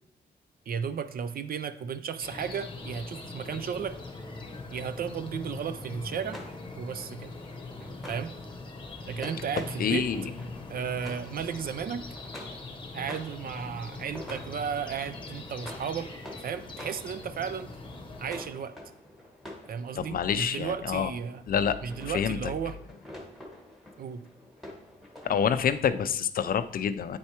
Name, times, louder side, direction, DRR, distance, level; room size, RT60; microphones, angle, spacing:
voice 1, 0.7-4.0 4.7-6.4 6.8-7.3 8.1-8.3 9.1-10.1 10.7-12.1 12.9-16.1 16.4-17.7 18.2-18.8 19.7-21.4 21.8-22.8 24.0-24.2, right 7 dB, 55° right, 13 dB, 0.4 m, -34 dB
sound 1, 2.2-18.4, left 2 dB, 30° left, 0.9 m, -42 dB
sound 2, 6.2-25.9, left 1 dB, ahead, 1.3 m, -48 dB
voice 2, 9.8-10.2 20.0-21.1 21.5-21.8 22.0-22.5 25.2-27.2, left 7 dB, 55° left, 12 dB, 0.4 m, -27 dB
8.6 x 4.5 x 2.8 m, 0.72 s
cardioid pair, 90°, 18 cm